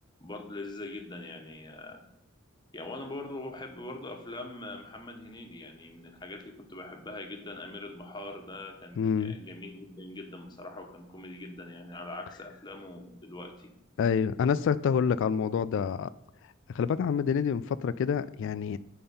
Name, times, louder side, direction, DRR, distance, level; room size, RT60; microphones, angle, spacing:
voice 1, 0.2-2.0 2.7-13.7, left 2 dB, 20° left, 1.3 m, -42 dB
voice 2, 9.0-9.4 14.0-16.1 16.7-18.8, left 7 dB, 60° left, 0.3 m, -27 dB
8.7 x 5.5 x 5.5 m
head